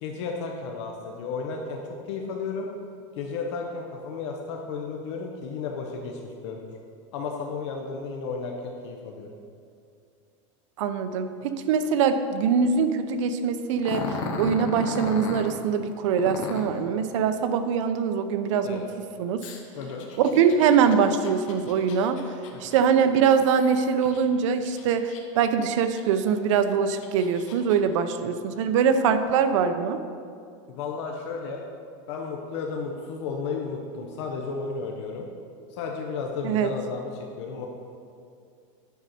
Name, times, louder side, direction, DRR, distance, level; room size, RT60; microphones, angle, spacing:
voice 1, 0.0-1.8 2.1-2.7 3.2-6.7 7.1-9.3 18.6-18.9 19.8-20.1 22.5-22.7 30.7-31.6 32.1-35.3 35.7-37.7, left 4 dB, 60° left, 1 dB, 0.9 m, -33 dB
voice 2, 10.8-18.8 19.2-19.5 20.2-22.2 22.6-30.0 36.4-36.7, right 6 dB, 70° right, 9 dB, 0.6 m, -23 dB
Growling, 13.8-15.5 16.2-16.8 19.4-24.2 24.6-25.5 26.0-26.1 26.7-27.8, left 4 dB, 75° left, 1.2 m, -35 dB
9.4 x 6.4 x 4.3 m, 2.4 s
supercardioid pair, 170°, 17 cm